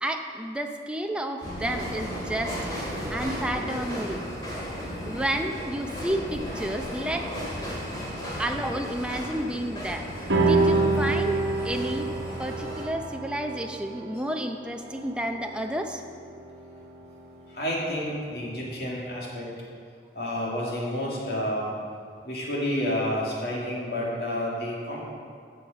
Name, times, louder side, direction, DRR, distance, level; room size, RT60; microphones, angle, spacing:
voice 1, 0.0-2.6 3.1-4.2 5.0-7.3 8.4-12.1 12.4-16.0, right 1 dB, 5° right, 3 dB, 0.6 m, -31 dB
sound 1, 1.4-12.8, equal, 25° left, 2.3 m, -35 dB
sound 2, 10.3-17.0, right 3 dB, 90° right, 1.1 m, -28 dB
voice 2, 17.5-19.5 20.1-21.7 22.2-25.0, left 1 dB, 60° left, -4 dB, 2.5 m, -30 dB
15.5 x 5.7 x 5.1 m, 2.2 s
head